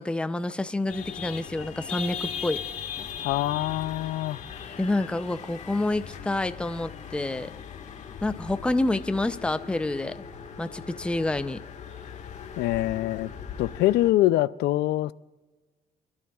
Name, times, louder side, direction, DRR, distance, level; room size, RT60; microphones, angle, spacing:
voice 1, 0.0-2.6 4.8-7.5 8.2-10.2 10.6-11.6, left 2 dB, 5° left, 11 dB, 0.5 m, -28 dB
sound 1, 0.9-14.1, left 7 dB, 45° left, 1.6 m, -39 dB
voice 2, 3.2-4.4 12.6-13.3 13.6-15.1, left 15 dB, 75° left, 16 dB, 0.4 m, -24 dB
26.5 x 12.0 x 2.4 m, 1.2 s
cardioid pair, 110°, 17 cm